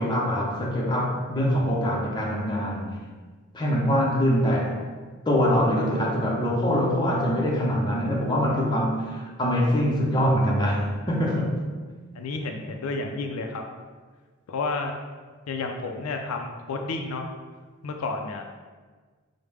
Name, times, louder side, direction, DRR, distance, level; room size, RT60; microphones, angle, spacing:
voice 1, 0.0-2.9 3.5-4.8 5.3-11.5, equal, 20° left, -3 dB, 0.6 m, -24 dB
voice 2, 12.1-13.6 14.5-14.9 15.5-17.3 17.8-18.6, left 3 dB, 90° left, 4 dB, 0.4 m, -31 dB
4.8 x 2.1 x 3.3 m, 1.4 s
head